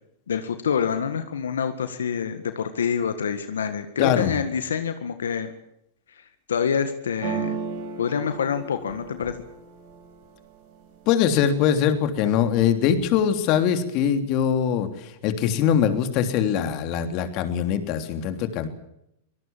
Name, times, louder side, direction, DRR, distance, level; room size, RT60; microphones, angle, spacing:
voice 1, 0.3-5.5 6.2-7.6 8.0-9.4, left 7 dB, 90° left, 9 dB, 1.8 m, -27 dB
voice 2, 4.0-4.4 11.1-18.7, left 8 dB, 45° left, 8 dB, 3.2 m, -22 dB
sound 1, 7.2-11.1 11.5-12.1 12.4-13.2, right 6 dB, 60° right, 6.9 m, -35 dB
24.5 x 18.5 x 7.4 m, 0.78 s
hypercardioid pair, 120°, 0 cm